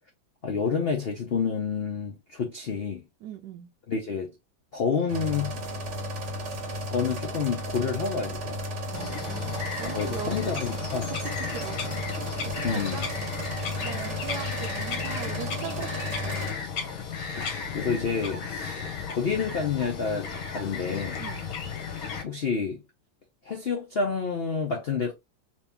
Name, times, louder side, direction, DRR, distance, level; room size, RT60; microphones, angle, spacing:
voice 1, 0.4-3.0 3.9-4.3 4.7-5.6 6.9-8.7 9.8-11.1 12.6-13.0 17.4-18.9 19.1-21.2 22.2-22.8 23.4-25.1, left 5 dB, 90° left, 0.5 m, -29 dB
voice 2, 3.2-3.7 8.9-10.6 11.0-12.0 12.4-13.1 13.8-16.5 21.2-21.5, right 8 dB, 70° right, 1.1 m, -40 dB
sound 1, 5.1-16.5, equal, 50° right, 1.0 m, -34 dB
Bird vocalization bird call bird song, 8.9-22.2, left 6 dB, 55° left, 1.2 m, -34 dB
3.1 x 2.9 x 3.4 m
omnidirectional pair, 2.1 m